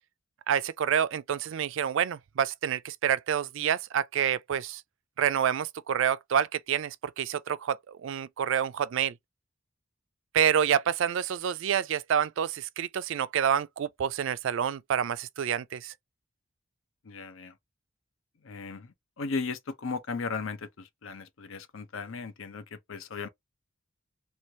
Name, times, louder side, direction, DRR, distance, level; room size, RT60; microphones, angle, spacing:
voice 1, 0.5-4.8 5.2-9.1 10.3-15.9, right 8 dB, 65° right, 0.3 m, -28 dB
voice 2, 17.0-17.5 18.4-23.3, left 4 dB, 70° left, 0.6 m, -36 dB
3.1 x 2.3 x 2.7 m
head